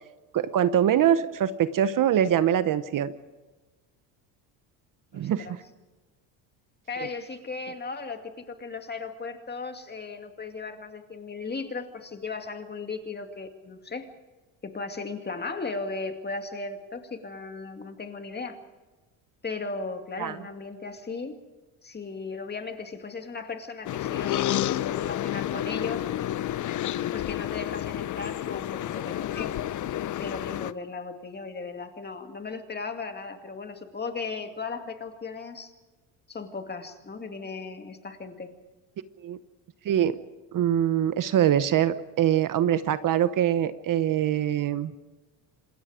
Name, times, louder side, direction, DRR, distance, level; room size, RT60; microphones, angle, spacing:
voice 1, 0.3-3.1 5.1-5.6 7.0-7.1 20.2-20.4 39.2-39.4 39.8-40.2 40.5-44.9, right 10 dB, 45° right, 13 dB, 1.0 m, -23 dB
voice 2, 5.1-5.6 6.9-14.1 14.6-18.6 19.4-21.3 21.8-26.0 27.1-29.6 30.2-35.7 36.3-38.5, left 4 dB, 20° left, 6 dB, 2.3 m, -36 dB
sound 1, 23.9-30.7, left 12 dB, 45° left, 0.7 m, -30 dB
27.0 x 21.0 x 5.0 m, 1.2 s
cardioid pair, 110°, 44 cm